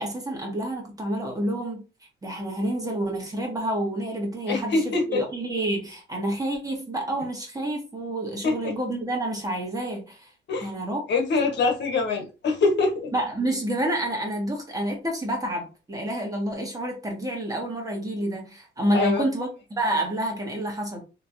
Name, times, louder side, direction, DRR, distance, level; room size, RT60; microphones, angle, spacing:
voice 1, 0.0-1.8 2.2-10.3 10.6-11.0 13.1-21.0, right 1 dB, 20° right, 1.5 m, -28 dB
voice 2, 4.5-5.2 8.4-8.7 10.5-10.7 11.1-13.1 18.9-19.2, left 3 dB, 60° left, 1.2 m, -24 dB
3.1 x 3.1 x 2.7 m
cardioid pair, 90°, 20 cm